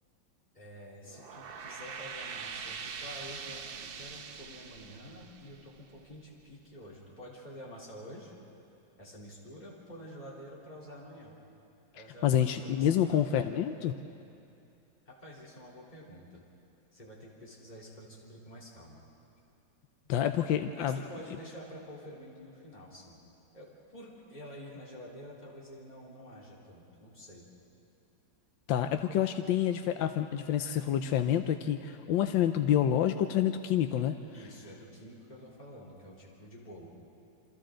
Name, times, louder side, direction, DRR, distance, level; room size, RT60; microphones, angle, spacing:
voice 1, 0.5-8.3 9.0-11.3 11.9-13.6 15.1-16.4 16.9-19.0 20.7-23.2 23.5-27.4 34.3-36.9, equal, 20° left, -5 dB, 3.5 m, -48 dB
sound 1, 1.0-6.3, right 6 dB, 75° right, 0.5 m, -43 dB
voice 2, 12.2-13.9 20.1-21.0 28.7-34.1, left 10 dB, 85° left, 7 dB, 1.4 m, -28 dB
28.0 x 26.5 x 3.8 m, 2.7 s
omnidirectional pair, 2.0 m